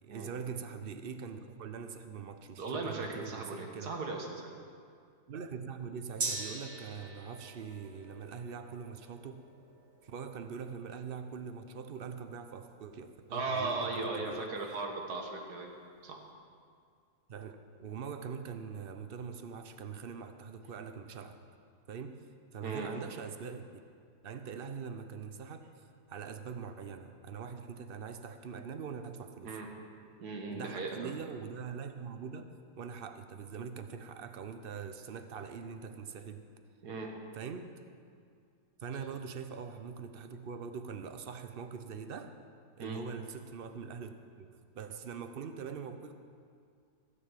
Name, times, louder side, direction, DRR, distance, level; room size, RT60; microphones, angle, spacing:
voice 1, 0.0-3.9 5.3-9.5 10.0-14.5 17.3-21.4 21.9-22.2 22.5-23.7 24.2-29.6 30.5-32.5 32.8-36.5 37.3-37.7 38.8-42.3 42.8-44.5 44.8-46.1, right 6 dB, 50° right, 8 dB, 0.7 m, -43 dB
voice 2, 2.6-4.5 13.3-15.7 16.0-16.2 22.6-22.9 29.4-29.7 30.2-31.1 36.8-37.1 42.8-43.0, right 3 dB, 75° right, 1 dB, 2.1 m, -37 dB
Gong, 6.2-14.0 14.3-14.4, right 3 dB, 35° right, 1.0 m, -44 dB
15.5 x 6.9 x 7.4 m, 2.2 s
omnidirectional pair, 1.7 m